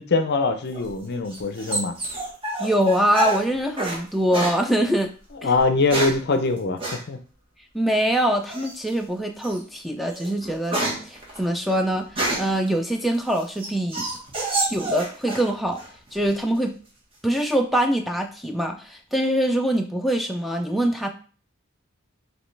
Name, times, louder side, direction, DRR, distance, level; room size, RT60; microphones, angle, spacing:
voice 1, 0.0-2.0 5.4-7.2, left 3 dB, 50° left, 8 dB, 0.5 m, -23 dB
sound 1, 0.7-4.0 4.3-4.6 5.5-6.3 6.8-7.0 8.5-8.9 9.4-9.6 10.0-12.6 13.1-15.5 15.8-16.4, right 2 dB, 25° right, 1.3 m, -28 dB
voice 2, 2.6-5.1 5.4-5.5 7.7-12.1 12.4-14.1 14.7-15.8 16.1-16.7 17.2-21.1, right 1 dB, ahead, 3 dB, 0.4 m, -23 dB
5.2 x 3.1 x 3.2 m, 0.40 s
head